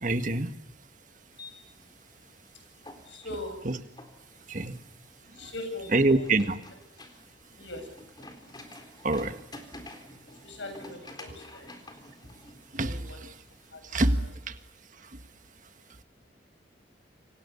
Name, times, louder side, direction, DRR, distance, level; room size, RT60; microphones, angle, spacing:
voice 1, 0.0-0.5 3.7-3.8 4.5-4.8 5.9-6.6 9.0-9.4 12.7-13.0 13.9-14.2, right 2 dB, 45° right, 1.6 m, -25 dB
sound 1, 1.3-13.8, left 2 dB, 25° left, 3.9 m, -50 dB
voice 2, 3.0-3.6 5.3-6.3 7.6-8.6 10.3-11.7 12.8-13.2 13.7-14.2, left 1 dB, 90° left, 8.0 m, -41 dB
29.5 x 25.5 x 7.1 m
head